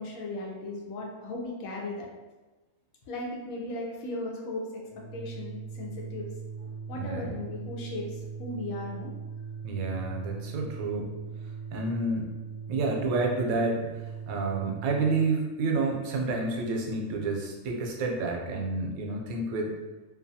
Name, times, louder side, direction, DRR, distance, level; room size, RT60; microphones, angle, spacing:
voice 1, 0.0-2.1 3.1-4.8 5.1-6.3 6.9-9.1, left 2 dB, 80° left, -1 dB, 1.1 m, -37 dB
Organ, 4.8-15.2, right 6 dB, 30° left, 0.5 m, -40 dB
voice 2, 6.9-7.3 9.6-11.1 11.7-12.3 12.7-19.7, right 3 dB, 85° right, 0 dB, 1.0 m, -29 dB
2.7 x 2.2 x 2.6 m, 1.2 s
omnidirectional pair, 1.5 m